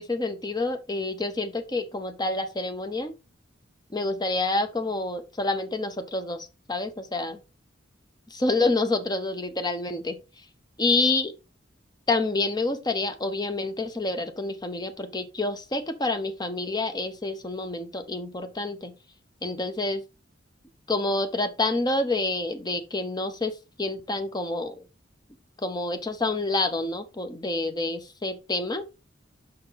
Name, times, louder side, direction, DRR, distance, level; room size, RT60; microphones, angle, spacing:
voice 1, 0.0-3.1 3.9-7.4 8.3-10.2 10.8-11.3 12.1-18.9 19.4-20.0 20.9-24.8 25.6-28.8, left 2 dB, 20° left, 0.7 m, -28 dB
6.5 x 4.4 x 3.9 m
head